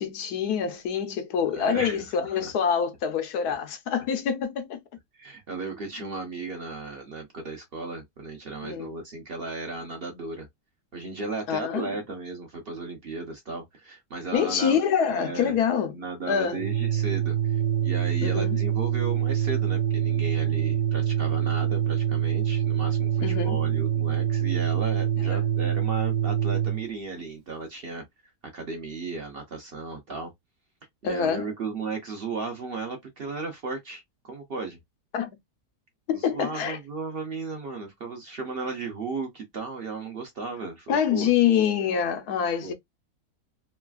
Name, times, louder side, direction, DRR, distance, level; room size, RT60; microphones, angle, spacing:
voice 1, 0.0-4.8 8.6-8.9 11.5-11.9 14.3-15.9 16.3-16.6 18.2-18.6 23.2-23.6 25.3-25.4 31.0-31.5 35.1-35.3 36.1-36.8 40.9-42.7, left 7 dB, 85° left, 1.3 m, -26 dB
voice 2, 1.5-2.0 2.4-2.5 5.1-10.5 10.9-14.8 15.1-15.5 15.9-28.0 28.5-30.3 31.0-34.8 36.1-41.3 42.6-42.7, right 3 dB, 50° right, 0.8 m, -35 dB
Organ, 16.5-26.9, right 10 dB, 80° right, 0.4 m, -25 dB
3.2 x 2.4 x 2.3 m
omnidirectional pair, 1.6 m